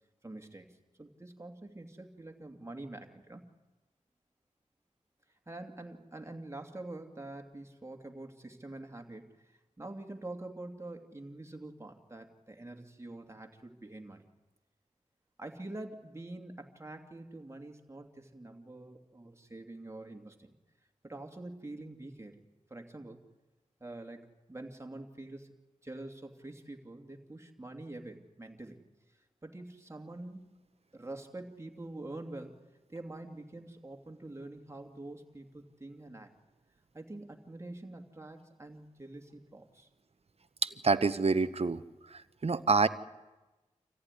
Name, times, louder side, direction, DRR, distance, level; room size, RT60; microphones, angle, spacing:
voice 1, 0.2-3.4 5.5-14.3 15.4-20.6 21.0-22.4 22.7-23.2 23.8-25.5 25.8-28.8 29.1-30.6 30.9-32.6 32.9-36.3 36.9-39.9, right 2 dB, 20° right, 4 dB, 2.6 m, -46 dB
voice 2, 40.6-41.8 42.1-42.9, right 4 dB, 50° right, 13 dB, 1.0 m, -27 dB
26.5 x 14.5 x 9.8 m, 1.1 s
cardioid pair, 60°, 13 cm